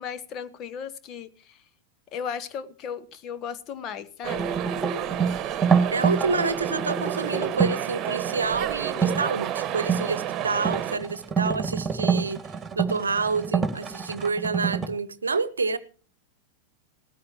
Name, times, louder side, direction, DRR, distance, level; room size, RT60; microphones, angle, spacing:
voice 1, 0.0-1.6 2.1-4.7, left 7 dB, 35° left, 1.2 m, -36 dB
sound 1, 4.2-11.0, right 11 dB, 30° right, 1.4 m, -31 dB
sound 2, 4.3-7.9 8.9-9.2 9.7-14.9, right 6 dB, 15° right, 2.2 m, -26 dB
voice 2, 5.9-12.4 12.8-15.8, right 4 dB, 75° right, 0.9 m, -28 dB
19.0 x 14.5 x 2.9 m
figure-of-eight pair, 90°, 0 cm